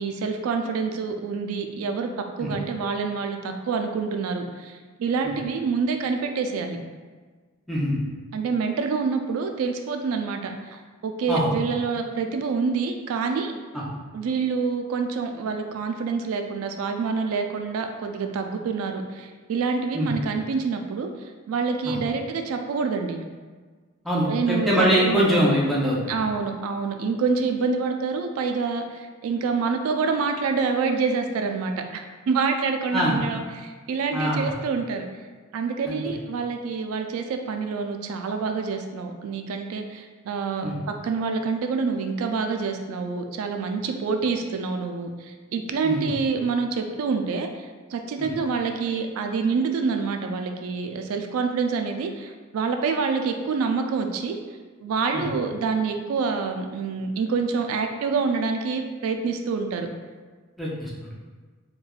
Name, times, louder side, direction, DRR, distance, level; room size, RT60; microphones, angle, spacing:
voice 1, 0.0-6.8 8.3-13.5 14.1-21.1 21.5-23.2 24.3-25.2 26.1-35.0 35.5-54.4 54.8-59.9, right 5 dB, 75° right, 9 dB, 0.3 m, -27 dB
voice 2, 24.0-26.1 32.9-33.2 34.1-34.5 35.9-36.0 40.6-40.8 45.8-46.1 48.2-48.3 55.1-55.2 60.6-60.9, equal, ahead, -7 dB, 0.5 m, -23 dB
3.1 x 2.2 x 2.3 m, 1.4 s
head